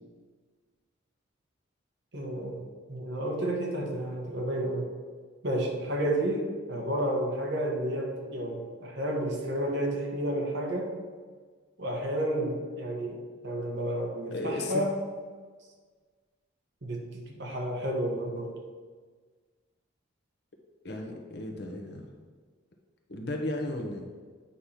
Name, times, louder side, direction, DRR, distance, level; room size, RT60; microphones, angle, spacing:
voice 1, 2.1-4.9 5.4-10.9 11.8-15.0 16.8-18.5, right 1 dB, 55° right, 0 dB, 1.4 m, -31 dB
voice 2, 14.3-14.8 20.8-22.1 23.1-24.1, left 1 dB, 55° left, 2 dB, 1.0 m, -35 dB
8.5 x 3.3 x 5.7 m, 1.5 s
head